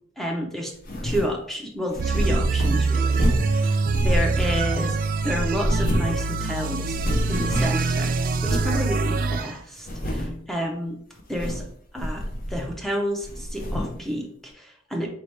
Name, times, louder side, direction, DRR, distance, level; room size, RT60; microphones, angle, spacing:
voice 1, 0.2-0.7 1.0-5.0 5.2-7.0 7.3-11.0 11.3-11.7 11.9-12.2 12.5-15.1, equal, ahead, 0 dB, 0.5 m, -30 dB
sound 1, 0.8-1.4 1.9-3.6 3.9-4.9 5.2-6.2 6.5-6.6 6.8-7.9 8.4-8.8 9.2-9.3 9.8-10.4 11.2-11.7 12.0-12.9 13.2-14.0, equal, 45° left, 0.7 m, -28 dB
sound 2, 2.0-9.5, right 4 dB, 45° right, 0.3 m, -24 dB
4.4 x 2.8 x 3.2 m, 0.63 s
head